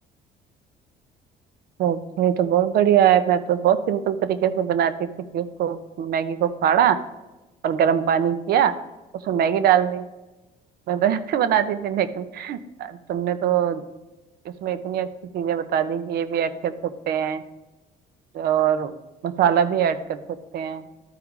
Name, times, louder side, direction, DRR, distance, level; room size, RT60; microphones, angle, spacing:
voice 1, 1.8-7.0 7.6-8.7 9.2-10.0 10.9-13.8 14.4-15.1 15.3-17.4 18.3-18.9 19.2-20.2 20.5-20.8, right 9 dB, 65° right, 11 dB, 0.7 m, -22 dB
13.0 x 4.6 x 3.6 m, 1.1 s
cardioid pair, 110°, 17 cm